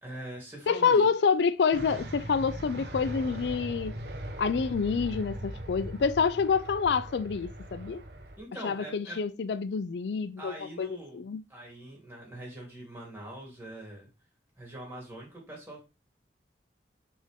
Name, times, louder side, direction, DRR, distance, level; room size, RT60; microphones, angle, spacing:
voice 1, 0.0-1.1 8.4-9.2 10.4-11.2 11.5-14.1 14.6-15.8, right 1 dB, 15° right, 2.9 m, -43 dB
voice 2, 0.7-4.0 4.4-8.0 8.6-11.4, left 5 dB, 75° left, 0.4 m, -27 dB
sound 1, 1.7-8.4, right 1 dB, 65° right, 1.0 m, -40 dB
6.3 x 4.4 x 3.5 m
head